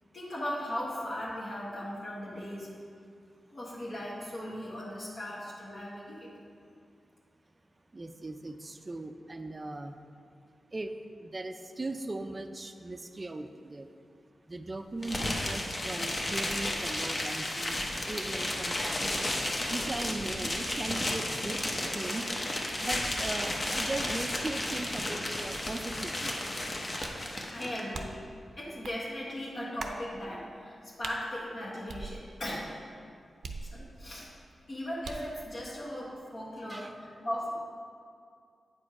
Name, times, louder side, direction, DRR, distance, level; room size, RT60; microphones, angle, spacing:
voice 1, 0.1-2.7 3.5-6.3 27.5-28.2 28.6-32.7 33.6-34.3 34.7-37.6, left 1 dB, 55° left, -6 dB, 1.5 m, -38 dB
voice 2, 7.9-9.9 10.7-10.9 11.2-13.9 14.5-17.8 18.1-19.0 19.7-21.6 21.9-22.3 22.8-26.3 36.7-36.9, right 2 dB, 30° right, 8 dB, 0.5 m, -38 dB
sound 1, 15.0-27.8, left 1 dB, 35° left, 1.0 m, -33 dB
sound 2, 27.0-27.3 27.9-28.3 28.8-29.0 29.8-30.1 31.0-31.2 31.9-32.5 33.4-34.1 35.0-35.4, right 4 dB, 75° right, 0.6 m, -41 dB
8.4 x 5.0 x 4.8 m, 2.3 s
wide cardioid pair, 90°, 0 cm